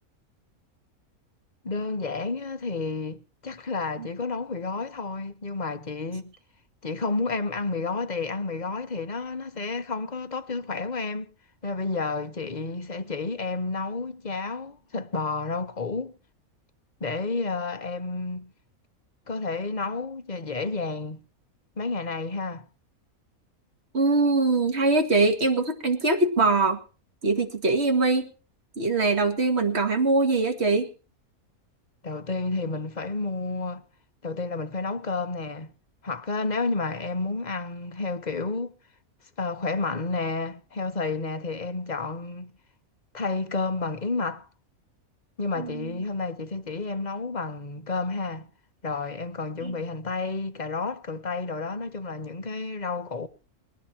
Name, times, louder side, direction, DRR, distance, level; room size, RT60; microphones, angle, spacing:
voice 1, 1.6-6.3 6.8-11.3 11.6-16.1 17.0-18.5 19.3-21.2 21.8-22.7 32.0-33.8 34.2-35.7 36.0-38.7 39.4-42.5 43.1-44.5 45.4-48.5 48.8-53.3, left 3 dB, 30° left, 1.1 m, -30 dB
voice 2, 23.9-26.8 27.2-28.3 28.8-30.9 45.6-45.9 49.6-49.7, right 3 dB, 45° right, 2.4 m, -22 dB
20.0 x 12.5 x 4.5 m
omnidirectional pair, 1.5 m